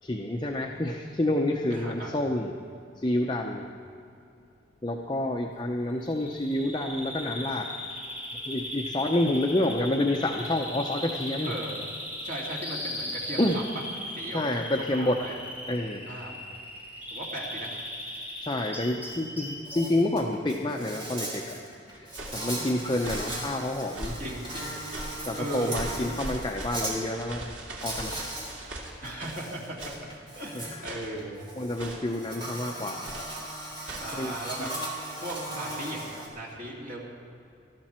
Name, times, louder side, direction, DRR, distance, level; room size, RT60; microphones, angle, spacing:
voice 1, 0.0-2.5 3.0-3.7 4.8-7.7 8.5-11.5 13.4-13.6 14.3-16.1 18.4-21.6 21.9-24.2 25.3-27.5 27.8-28.4 30.5-30.8 31.6-33.0 34.1-34.7, left 1 dB, 25° left, 1 dB, 0.7 m, -29 dB
voice 2, 1.7-2.2 11.4-11.7 12.2-13.8 14.1-14.4 14.9-15.3 16.0-16.4 17.1-17.8 22.5-23.0 24.2-24.8 25.3-26.1 29.0-29.8 30.4-31.4 34.0-34.7 35.2-37.1, right 1 dB, 45° right, -3 dB, 2.4 m, -37 dB
Bird vocalization bird call bird song, 6.0-20.0, left 1 dB, 10° right, 3.4 m, -38 dB
Insect, 19.0-19.1 19.5-26.9 27.8-28.5 28.9-36.3, right 1 dB, 25° right, 3.7 m, -38 dB
sound 1, 21.9-22.5 23.0-23.4 23.9-24.3 24.9-25.3 25.7-29.5 29.8-30.1 30.8-31.2 31.8-32.2 33.0-33.4 33.8-34.2 34.6-34.9 35.2-35.5, right 1 dB, 75° right, 2.6 m, -40 dB
19.5 x 13.5 x 4.4 m, 2.6 s
head